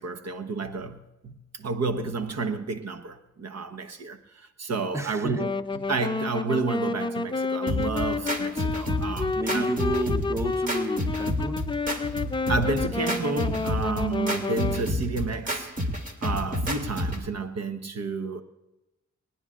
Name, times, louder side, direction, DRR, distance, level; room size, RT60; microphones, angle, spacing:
voice 1, 0.0-9.7 12.5-15.7 16.2-18.4, right 3 dB, 55° right, 1.2 m, -31 dB
voice 2, 4.9-5.4 9.3-11.7, right 1 dB, 10° right, 1.0 m, -31 dB
Wind instrument woodwind instrument, 5.3-14.9, left 3 dB, 15° left, 0.4 m, -30 dB
sound 1, 7.7-17.3, equal, 25° right, 2.3 m, -30 dB
27.0 x 9.9 x 2.5 m
cardioid pair, 70°, 30 cm